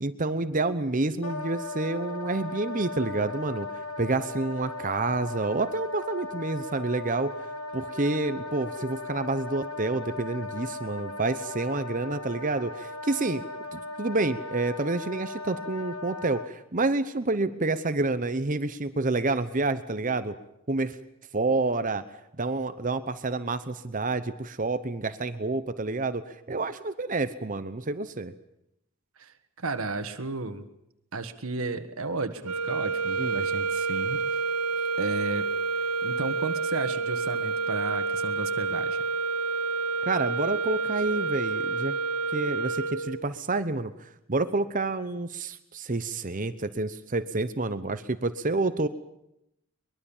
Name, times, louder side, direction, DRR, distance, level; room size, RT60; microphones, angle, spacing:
voice 1, 0.0-3.7 4.0-7.3 7.7-13.4 13.7-20.4 20.7-21.0 21.3-22.0 22.4-28.3 33.2-33.4 40.1-42.0 42.3-48.9, right 3 dB, 35° right, 11 dB, 0.9 m, -28 dB
Wind instrument woodwind instrument, 1.2-16.5, left 2 dB, 85° left, 1.9 m, -37 dB
voice 2, 29.2-30.7 31.1-34.2 35.0-35.5 36.0-39.0, right 3 dB, 70° right, 8 dB, 1.6 m, -33 dB
sound 1, 32.4-43.3, right 4 dB, 85° right, 1.6 m, -29 dB
23.5 x 21.5 x 7.3 m, 0.83 s
head